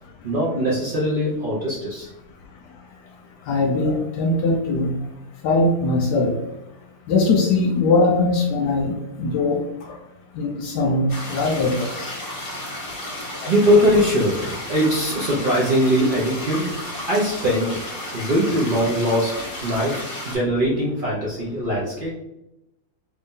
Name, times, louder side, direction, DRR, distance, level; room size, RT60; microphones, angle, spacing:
voice 1, 0.2-2.1 13.5-17.8 18.1-22.1, equal, 75° right, -5 dB, 0.4 m, -21 dB
voice 2, 3.5-4.9 5.4-6.3 7.1-10.0 10.4-12.1 13.4-13.5, left 3 dB, 75° left, 2 dB, 1.1 m, -21 dB
sound 1, 11.1-20.3, left 1 dB, 40° left, 0.9 m, -33 dB
3.2 x 2.7 x 3.6 m, 0.89 s
omnidirectional pair, 1.9 m